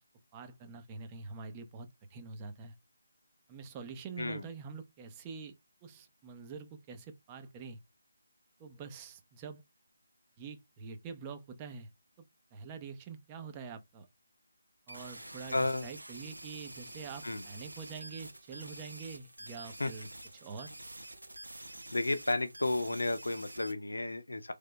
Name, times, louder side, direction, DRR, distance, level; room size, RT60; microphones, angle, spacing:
voice 1, 0.3-2.7 3.5-5.5 5.8-7.8 8.6-9.6 10.4-11.9 12.2-12.3 12.5-14.1 14.9-20.7, right 5 dB, 20° right, 0.7 m, -46 dB
sound 1, 14.9-23.7, right 1 dB, 90° right, 1.2 m, -48 dB
voice 2, 15.5-15.9 17.2-17.4 19.8-19.9 21.9-24.5, left 2 dB, 75° left, 0.7 m, -32 dB
3.8 x 3.4 x 3.4 m
figure-of-eight pair, 155°, 0 cm